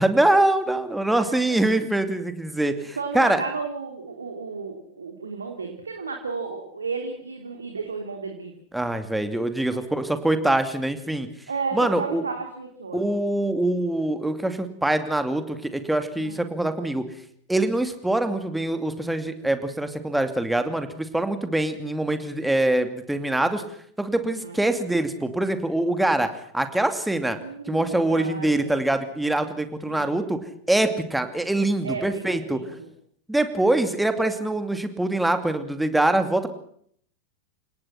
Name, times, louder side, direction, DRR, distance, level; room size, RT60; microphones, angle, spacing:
voice 1, 0.0-3.4 8.7-11.3 11.7-12.2 12.9-17.0 17.5-23.6 24.0-27.4 27.7-30.4 30.7-32.6 33.3-36.5, right 1 dB, 5° right, 8 dB, 2.6 m, -24 dB
voice 2, 1.1-1.6 3.0-8.6 9.6-9.8 11.5-13.1 16.2-16.5 24.2-24.6 27.4-28.8 29.9-30.2 31.8-32.9, right 4 dB, 75° right, 4 dB, 3.2 m, -33 dB
30.0 x 18.5 x 5.9 m, 0.63 s
figure-of-eight pair, 90°, 0 cm